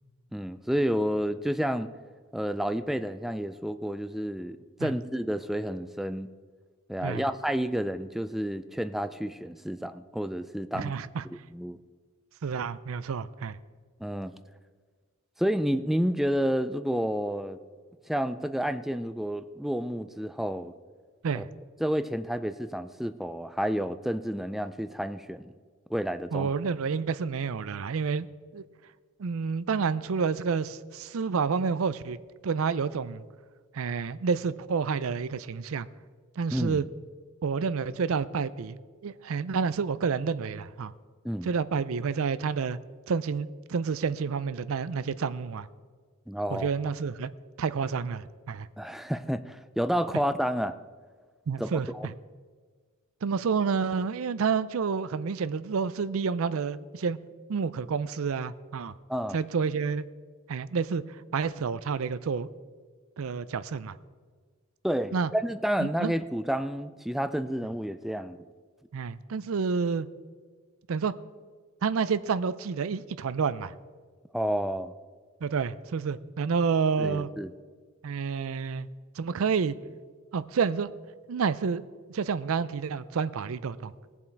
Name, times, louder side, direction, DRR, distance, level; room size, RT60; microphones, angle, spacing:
voice 1, 0.3-1.9 2.3-6.3 6.9-10.9 11.5-11.8 14.0-14.3 15.4-17.6 18.1-20.7 21.3-21.4 21.8-25.5 25.9-26.5 36.5-36.8 41.2-41.5 46.3-46.7 48.8-50.8 51.6-52.1 59.1-59.4 64.8-68.4 74.3-74.9 77.0-77.5, equal, ahead, 11 dB, 0.4 m, -30 dB
voice 2, 10.7-11.2 12.4-13.6 21.2-21.5 26.3-28.3 28.5-28.6 29.2-32.2 32.4-33.2 33.7-35.9 36.4-36.8 37.4-38.8 39.0-40.9 41.4-42.8 43.1-45.7 46.5-47.3 47.6-48.7 51.5-52.1 53.2-57.2 57.5-58.9 59.3-60.0 60.5-61.0 61.3-62.5 63.2-64.0 65.1-65.3 65.8-66.1 68.9-70.1 70.9-71.1 71.8-73.7 75.4-77.3 78.0-78.9 79.2-79.8 80.3-80.9 81.3-81.8 82.1-83.9, right 5 dB, 65° right, 16 dB, 0.5 m, -29 dB
18.0 x 7.3 x 4.5 m, 1.6 s
head